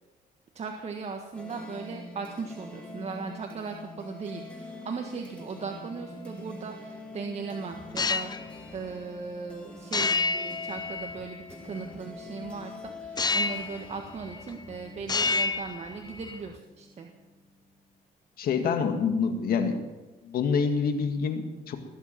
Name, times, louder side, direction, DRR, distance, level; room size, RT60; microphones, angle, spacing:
voice 1, 0.5-17.1, right 5 dB, 45° right, 3 dB, 1.6 m, -38 dB
sound 1, 1.3-17.9, left 2 dB, 5° left, 3.0 m, -44 dB
sound 2, 7.8-8.4 9.9-11.4 13.2-13.9 14.2-14.7 15.0-16.4, left 4 dB, 25° left, 0.7 m, -29 dB
voice 2, 18.4-19.8 20.2-21.8, left 5 dB, 70° left, 6 dB, 2.0 m, -26 dB
20.0 x 8.4 x 7.5 m, 1.1 s
cardioid pair, 105°, 16 cm